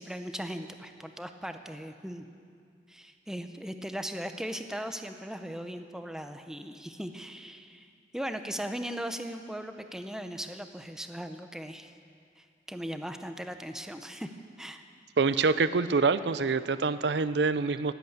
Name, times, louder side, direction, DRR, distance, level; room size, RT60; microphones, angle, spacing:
voice 1, 0.0-2.2 2.9-7.9 8.1-11.9 12.4-14.3 14.6-14.8, equal, 5° right, 7 dB, 0.7 m, -38 dB
voice 2, 15.2-17.9, right 4 dB, 70° right, 14 dB, 0.5 m, -26 dB
19.5 x 8.3 x 8.0 m, 2.3 s
head